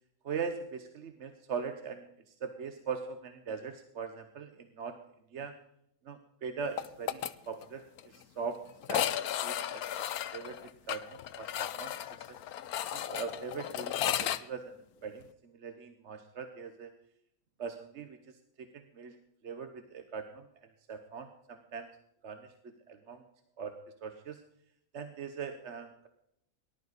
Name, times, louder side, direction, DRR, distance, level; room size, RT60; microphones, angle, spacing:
voice 1, 0.2-5.0 5.3-5.6 6.0-8.6 8.9-9.1 9.4-10.1 10.3-11.9 12.3-12.4 12.9-14.7 15.0-15.3 15.6-16.9 17.6-18.2 18.6-19.2 19.4-20.5 20.9-21.9 22.2-23.2 23.6-23.7 24.0-24.4 24.9-26.1, right 6 dB, 55° right, 7 dB, 1.2 m, -41 dB
sound 1, 6.8-7.3 7.6-7.7 8.0-8.1 8.8-14.4, left 11 dB, 85° left, 1.2 m, -34 dB
19.0 x 11.5 x 4.0 m, 0.76 s
omnidirectional pair, 1.5 m